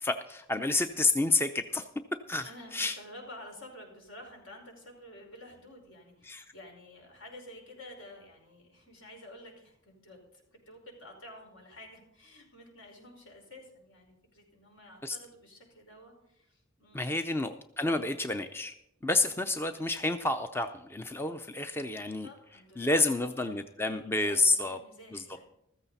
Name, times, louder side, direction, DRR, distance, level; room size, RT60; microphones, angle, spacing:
voice 1, 0.0-3.0 6.2-6.4 15.0-15.2 16.9-18.7 19.0-22.3 22.8-24.8 25.1-25.2, left 2 dB, 10° left, 8 dB, 0.5 m, -29 dB
voice 2, 2.4-17.3 22.2-25.5, left 1 dB, 70° left, 1 dB, 5.1 m, -51 dB
14.5 x 14.0 x 4.1 m, 0.80 s
head